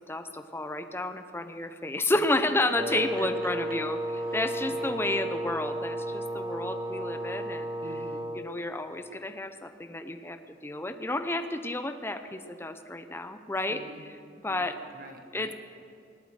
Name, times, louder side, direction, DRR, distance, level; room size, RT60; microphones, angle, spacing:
voice 1, 0.1-4.0 4.3-7.7 8.4-13.8 14.4-14.7 15.3-15.5, left 2 dB, 15° left, 8 dB, 0.8 m, -31 dB
voice 2, 2.6-3.7 4.3-5.0 7.8-8.3 13.7-14.0 14.5-15.5, right 3 dB, 55° right, 4 dB, 1.6 m, -46 dB
Wind instrument woodwind instrument, 2.7-8.5, right 1 dB, 20° right, 0.6 m, -33 dB
18.5 x 12.0 x 6.5 m, 2.3 s
head